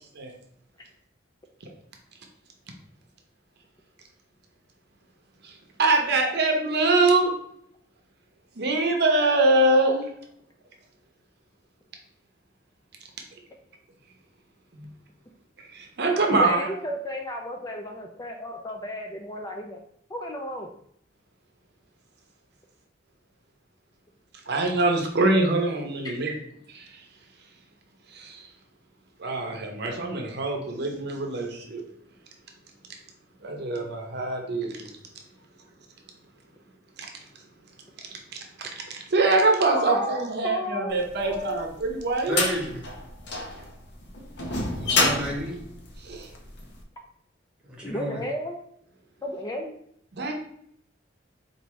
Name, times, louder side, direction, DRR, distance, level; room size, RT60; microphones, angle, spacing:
voice 1, 5.8-7.3 8.6-10.0 14.7-14.9 15.7-16.8 24.5-26.3 26.7-26.9 28.1-28.5 29.2-31.8 33.4-34.9 38.6-42.4 46.0-46.3 50.1-50.3, right 2 dB, 65° right, 2 dB, 0.7 m, -24 dB
voice 2, 16.3-19.8 20.1-20.7 26.0-26.2 39.7-41.7 47.8-48.6 49.2-49.7, left 1 dB, 20° left, 2 dB, 0.4 m, -33 dB
sound 1, 41.3-46.6, left 3 dB, 65° left, 0.7 m, -28 dB
voice 3, 42.3-42.9 44.7-45.6 47.7-48.2, right 1 dB, 5° right, -3 dB, 1.1 m, -31 dB
4.6 x 2.6 x 3.0 m, 0.69 s
head